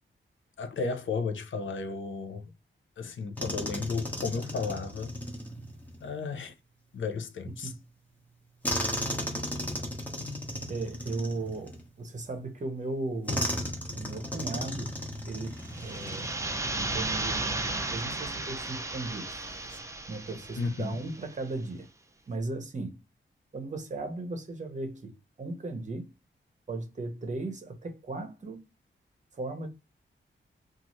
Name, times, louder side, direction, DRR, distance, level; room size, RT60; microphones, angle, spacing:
voice 1, 0.6-2.5 3.0-5.2 6.0-6.5 6.9-7.7 20.6-21.0, left 4 dB, 70° left, 0.6 m, -33 dB
sound 1, 3.4-6.1 8.6-12.1 13.3-16.6 16.9-17.1 19.5-19.8, equal, 10° left, 0.8 m, -35 dB
voice 2, 10.7-13.5 13.9-14.9 15.3-16.3 16.7-19.4 20.1-21.9 22.3-23.0 23.5-25.1 25.4-26.1 26.7-28.6 29.3-29.7, right 2 dB, 35° right, 0.8 m, -36 dB
sound 2, 15.6-21.3, right 2 dB, 15° right, 0.4 m, -34 dB
2.7 x 2.4 x 3.0 m
wide cardioid pair, 140°, 21 cm